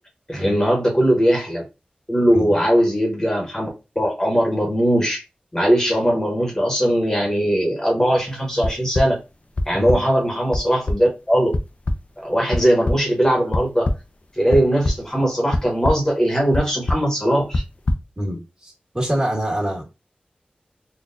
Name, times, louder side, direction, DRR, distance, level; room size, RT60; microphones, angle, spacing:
voice 1, 0.3-1.6 2.1-3.7 3.9-5.2 5.5-9.2 9.7-11.5 12.2-13.9 14.4-17.6, equal, 20° left, -1 dB, 1.0 m, -19 dB
sound 1, 8.6-9.0 9.6-10.0 10.5-10.6 10.9-11.0 11.5-11.6 11.9-12.0 12.5-12.9 13.5-13.9 14.5-15.0 15.5-15.9 16.5-16.6 16.9-17.0 17.5-17.9, left 1 dB, 50° left, 0.5 m, -20 dB
voice 2, 18.2-19.8, right 1 dB, 30° right, -3 dB, 1.7 m, -26 dB
3.9 x 2.3 x 2.5 m, 0.27 s
wide cardioid pair, 70°, 3 cm